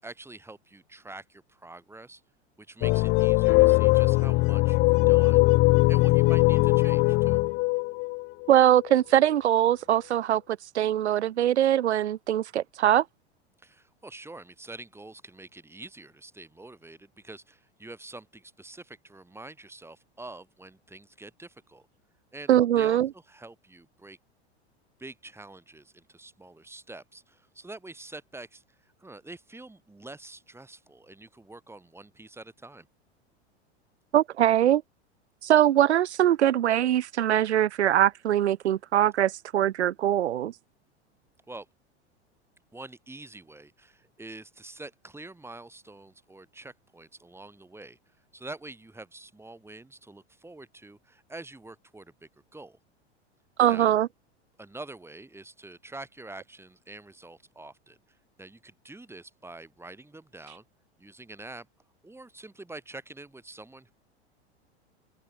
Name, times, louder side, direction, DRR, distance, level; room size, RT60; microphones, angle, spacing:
voice 1, 0.0-2.2 2.6-5.5 5.9-7.4 13.6-21.9 22.3-24.2 25.0-32.9 41.5-41.7 42.7-48.0 48.3-52.8 53.7-53.9 54.6-60.6 61.0-61.7 62.0-63.9, right 2 dB, 5° right, 7.9 m, -46 dB
sound 1, 2.8-9.0, left 24 dB, 35° left, 0.5 m, -21 dB
voice 2, 8.5-10.4 10.7-13.0 22.5-23.1 34.1-34.8 35.4-40.5 53.6-54.1, right 11 dB, 75° right, 1.2 m, -22 dB
open air
hypercardioid pair, 90°, 34 cm